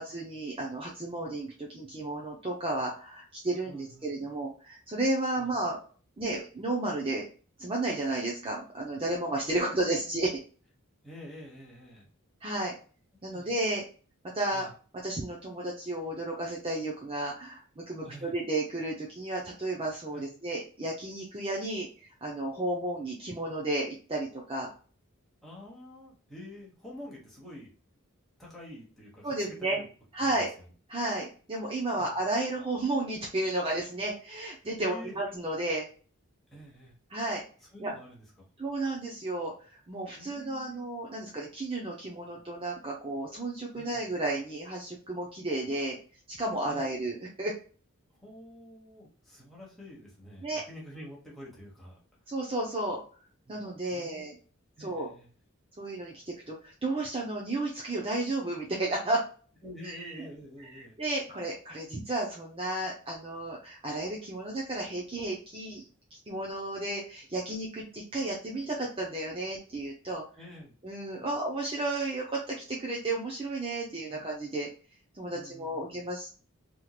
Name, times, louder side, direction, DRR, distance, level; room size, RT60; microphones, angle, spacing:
voice 1, 0.0-5.8 6.2-7.3 7.6-10.4 12.4-12.7 13.2-13.8 14.3-14.7 15.0-24.7 29.2-29.8 30.1-30.5 30.9-35.9 37.1-37.4 37.8-37.9 38.6-46.0 46.3-47.5 50.4-50.6 52.3-53.0 53.5-54.3 54.8-55.1 55.8-59.2 59.8-60.1 60.8-65.8 66.3-70.2 70.8-74.7 75.1-76.3, right 2 dB, 25° right, -3 dB, 0.6 m, -33 dB
voice 2, 3.7-4.3 5.4-5.5 9.5-9.9 11.0-12.1 13.3-13.5 14.5-14.7 18.0-18.4 20.1-20.3 25.4-27.7 28.4-29.8 30.2-30.7 32.0-32.1 34.8-35.1 36.5-37.0 37.6-38.2 40.1-40.9 43.7-44.1 46.6-47.0 48.2-52.0 53.4-53.6 53.9-54.3 54.8-55.3 59.6-60.9 70.3-70.7 71.2-71.3 74.1-74.3 75.3-76.0, equal, ahead, -5 dB, 1.2 m, -48 dB
3.6 x 3.0 x 2.3 m, 0.39 s
head